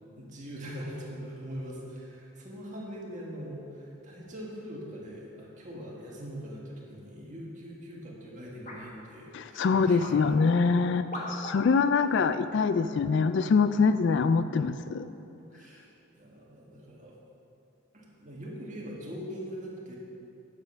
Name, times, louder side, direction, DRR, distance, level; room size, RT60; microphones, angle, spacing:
voice 1, 0.2-10.1 15.5-15.9 16.2-17.2 17.9-20.0, equal, 35° right, -4 dB, 1.7 m, -42 dB
sound 1, 8.6-8.9 9.7-10.2 11.1-11.6 12.7-12.8 13.6-13.8, left 1 dB, 35° left, 1.4 m, -40 dB
voice 2, 9.3-15.1, left 5 dB, 55° left, 11 dB, 0.3 m, -24 dB
10.5 x 7.6 x 5.6 m, 2.7 s
head